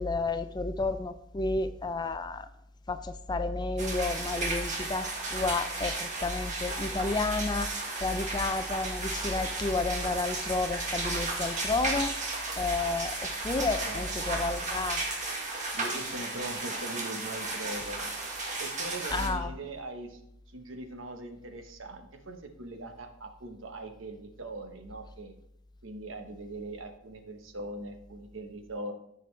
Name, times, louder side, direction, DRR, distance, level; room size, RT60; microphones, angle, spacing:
voice 1, 0.0-2.5 2.9-7.7 8.0-12.1 12.6-15.0 19.1-19.5, left 3 dB, 20° left, 10 dB, 0.4 m, -31 dB
sound 1, 3.8-19.3, right 2 dB, 40° right, 1.6 m, -34 dB
voice 2, 13.8-14.9 15.7-18.1 18.6-20.2 20.5-25.3 25.8-28.9, right 2 dB, 75° right, 5 dB, 1.0 m, -41 dB
13.5 x 5.3 x 3.2 m, 0.77 s
head